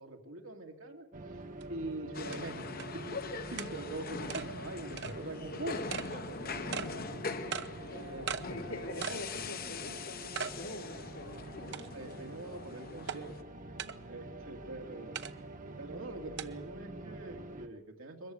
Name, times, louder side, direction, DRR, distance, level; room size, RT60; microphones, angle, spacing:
voice 1, 0.0-5.8 6.1-7.1 7.9-8.3 11.9-13.4 14.1-15.2 15.8-18.3, right 2 dB, 85° right, 3 dB, 2.4 m, -44 dB
sound 1, 1.1-17.7, right 2 dB, 40° right, 1.1 m, -47 dB
sound 2, 1.6-1.7 2.3-2.4 2.8-2.9 3.6-3.7 4.3-4.5 5.0-5.1 5.9-6.1 6.7-6.9 7.5-7.7 8.3-8.4 9.0-9.2 9.7-9.8 10.3-10.6 11.0-11.1 11.7-12.1 13.1-13.2 13.8-14.0 15.1-15.3 16.4-16.5, right 7 dB, 60° right, 0.8 m, -38 dB
sound 3, 2.1-13.4, left 4 dB, 45° left, 0.9 m, -42 dB
voice 2, 7.8-11.7, left 1 dB, 90° left, 2 dB, 3.4 m, -44 dB
22.0 x 14.5 x 9.5 m, 1.1 s
head